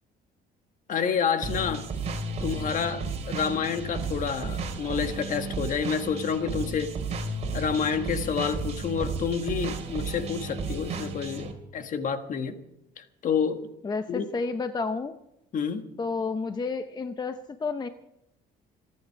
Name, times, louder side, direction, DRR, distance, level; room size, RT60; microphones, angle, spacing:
voice 1, 0.9-1.8 2.4-6.9 7.5-12.6 13.0-13.7 14.1-14.3 15.5-15.9, left 6 dB, 50° left, 8 dB, 1.6 m, -29 dB
sound 1, 1.4-11.5, right 4 dB, 40° right, 2.7 m, -33 dB
voice 2, 13.8-15.2 16.0-17.9, left 4 dB, 25° left, 9 dB, 0.7 m, -31 dB
27.0 x 9.4 x 4.7 m, 0.82 s
cardioid pair, 110°, 17 cm